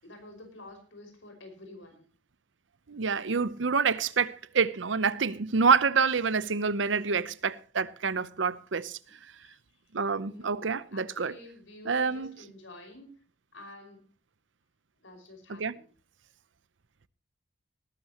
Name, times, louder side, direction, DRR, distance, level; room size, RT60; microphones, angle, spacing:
voice 1, 0.0-2.1 6.8-7.1 9.1-9.6 10.2-13.2 13.5-14.1 15.0-15.9, left 1 dB, 90° left, 5.6 m, -49 dB
voice 2, 2.9-9.0 9.9-11.3 11.9-12.3 15.5-15.7, right 5 dB, 75° right, 0.8 m, -27 dB
19.0 x 12.5 x 3.0 m
head